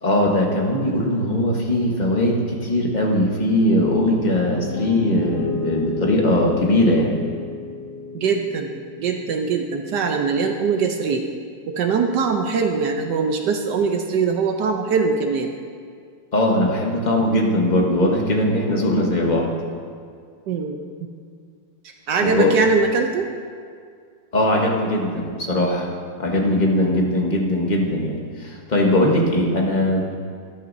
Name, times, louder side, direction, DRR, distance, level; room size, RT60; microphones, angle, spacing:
voice 1, 0.0-7.1 16.3-19.5 22.2-22.5 24.3-25.9 26.2-30.0, left 1 dB, 30° left, -1 dB, 0.9 m, -20 dB
Piano, 3.9-12.0, left 3 dB, 75° left, 2.7 m, -34 dB
voice 2, 8.1-8.7 9.0-11.3 11.7-15.5 20.5-20.8 22.1-23.3 26.8-27.1, right 5 dB, 70° right, 4 dB, 1.1 m, -22 dB
13.0 x 11.0 x 2.6 m, 2.2 s
omnidirectional pair, 2.2 m